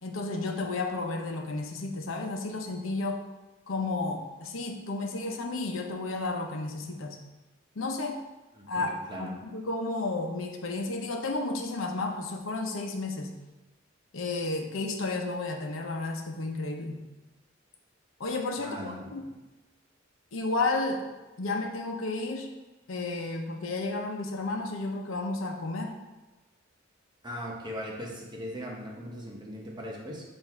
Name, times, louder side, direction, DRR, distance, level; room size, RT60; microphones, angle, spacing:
voice 1, 0.0-3.2 3.7-7.2 7.8-8.2 8.7-13.3 14.1-17.0 18.2-19.2 20.3-21.1 21.4-22.5 22.9-26.0, left 2 dB, 90° left, 2 dB, 0.8 m, -32 dB
voice 2, 8.6-9.4 18.6-19.1 27.2-30.2, equal, 20° right, -2 dB, 1.0 m, -39 dB
7.6 x 2.7 x 4.6 m, 1.1 s
head